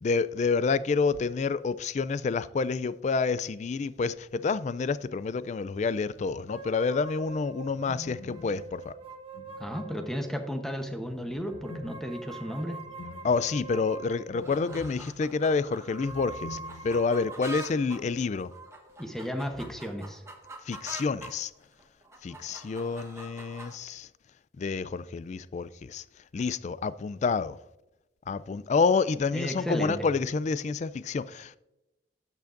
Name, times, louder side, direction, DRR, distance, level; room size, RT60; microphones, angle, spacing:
voice 1, 0.0-8.9 13.2-18.5 20.6-21.5 22.2-24.1 24.6-26.0 26.3-27.6 28.3-31.6, left 4 dB, 40° left, 0.3 m, -28 dB
sound 1, 6.1-6.9 7.6-10.4 11.0-17.3 17.5-17.6 19.4-19.8, left 2 dB, 80° left, 0.6 m, -47 dB
sound 2, 6.5-10.7 11.4-14.8 15.7-20.1, right 2 dB, 30° right, 1.0 m, -45 dB
voice 2, 9.6-12.8 19.0-20.2 29.3-30.1, equal, ahead, 0.9 m, -34 dB
sound 3, 14.4-21.3 21.8-23.8, right 2 dB, 15° right, 1.2 m, -45 dB
11.5 x 8.2 x 2.5 m
head